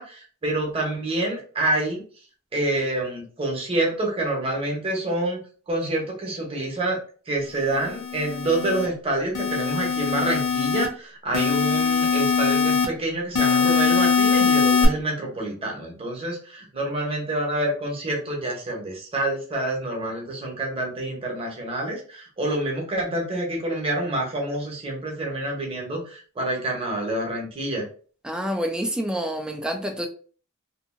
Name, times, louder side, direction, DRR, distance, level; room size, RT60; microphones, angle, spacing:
voice 1, 0.0-2.0 2.5-5.4 5.7-7.0 7.3-27.8, right 1 dB, 25° right, 0.9 m, -27 dB
sound 1, 7.7-8.9 9.4-10.9 11.3-12.9 13.4-14.9, left 6 dB, 85° left, 0.6 m, -22 dB
voice 2, 28.2-30.1, equal, 5° right, 0.3 m, -27 dB
2.7 x 2.5 x 2.5 m
head